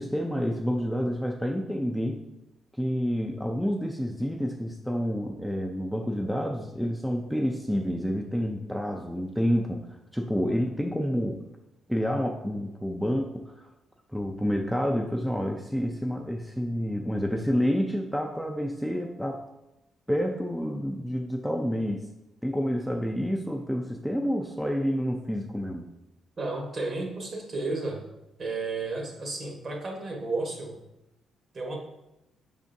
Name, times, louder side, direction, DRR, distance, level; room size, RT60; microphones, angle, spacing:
voice 1, 0.0-2.2 2.7-11.4 11.9-13.7 14.1-19.5 20.1-22.1 22.4-25.9, equal, ahead, 1 dB, 0.4 m, -29 dB
voice 2, 26.4-28.0 28.4-30.8 31.5-31.7, right 3 dB, 45° right, 1 dB, 1.1 m, -32 dB
4.9 x 3.6 x 2.6 m, 0.91 s
cardioid pair, 90°, 0 cm